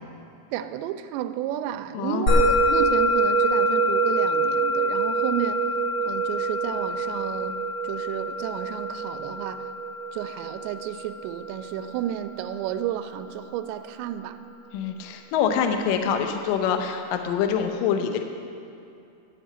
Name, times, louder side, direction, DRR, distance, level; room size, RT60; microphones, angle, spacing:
voice 1, 0.5-5.7 6.1-9.7 10.1-14.5, right 11 dB, 85° right, 10 dB, 2.8 m, -32 dB
voice 2, 1.9-2.4 14.7-18.2, left 7 dB, 80° left, 6 dB, 2.0 m, -25 dB
Musical instrument, 2.3-12.9, right 1 dB, 45° left, 3.3 m, -25 dB
12.5 x 6.2 x 8.8 m, 2.6 s
omnidirectional pair, 5.0 m